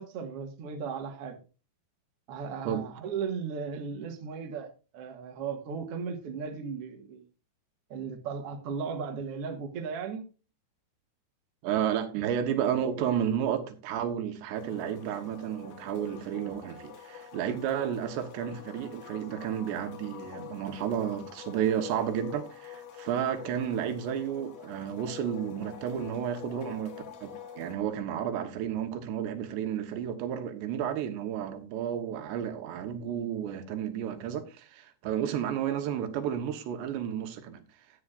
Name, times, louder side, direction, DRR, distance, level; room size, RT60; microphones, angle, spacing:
voice 1, 0.0-1.4 2.3-7.2 7.9-10.3, right 6 dB, 55° right, 1.7 m, -36 dB
voice 2, 11.6-27.0 27.2-37.6, right 9 dB, 80° right, 3.3 m, -32 dB
sound 1, 14.5-27.8, left 9 dB, 70° left, 1.8 m, -46 dB
13.5 x 9.6 x 2.5 m
omnidirectional pair, 4.9 m